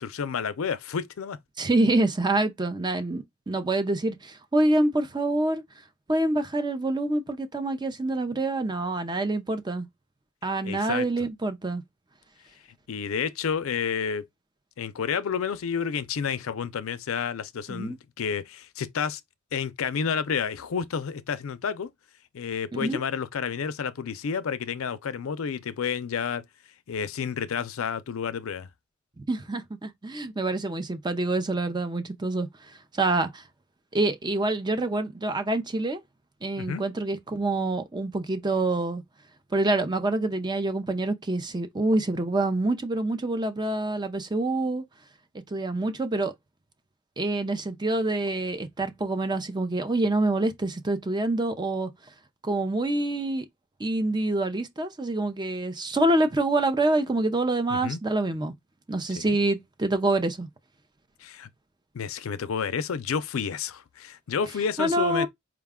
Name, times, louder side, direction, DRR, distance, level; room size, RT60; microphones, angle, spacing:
voice 1, 0.0-1.4 10.6-11.1 12.9-14.3 14.8-19.2 19.5-21.9 22.3-26.4 26.9-28.7 36.6-36.8 57.7-58.0 59.2-59.4 61.2-61.5 61.9-65.3, left 6 dB, 75° left, 0.5 m, -30 dB
voice 2, 1.6-5.6 6.1-9.9 10.4-11.8 17.7-18.0 22.7-23.0 29.2-32.5 32.9-33.4 33.9-36.0 36.4-39.0 39.5-44.8 45.5-46.3 47.2-51.9 52.4-53.5 53.8-58.5 58.9-60.5 64.8-65.3, right 2 dB, 20° right, 0.5 m, -26 dB
4.8 x 2.2 x 3.5 m
head